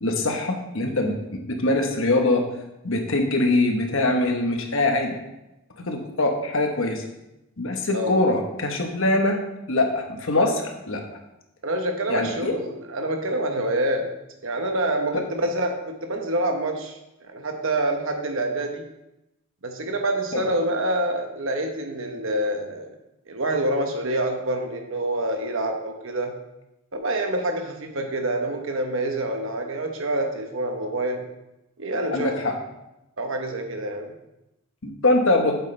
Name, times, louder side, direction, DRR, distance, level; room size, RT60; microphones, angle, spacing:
voice 1, 0.0-2.4 2.8-5.2 5.8-7.0 7.6-9.4 9.7-11.0 12.1-12.5 20.3-20.4 32.1-32.5 34.8-35.6, left 2 dB, 60° left, 3 dB, 1.3 m, -23 dB
voice 2, 11.6-14.1 14.4-18.8 19.6-22.9 23.3-26.4 26.9-31.2 31.8-32.3 33.2-34.1, right 1 dB, 60° right, 3 dB, 1.2 m, -27 dB
8.2 x 8.1 x 3.4 m, 0.91 s
head